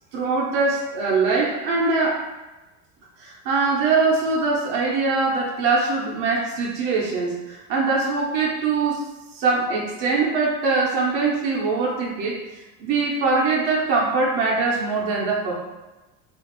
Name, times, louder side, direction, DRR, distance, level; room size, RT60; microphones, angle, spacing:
voice 1, 0.1-2.3 3.2-9.1 9.3-12.4 12.8-15.5, right 4 dB, 55° right, -3 dB, 0.7 m, -22 dB
2.8 x 2.5 x 2.9 m, 1.1 s
cardioid pair, 165°, 38 cm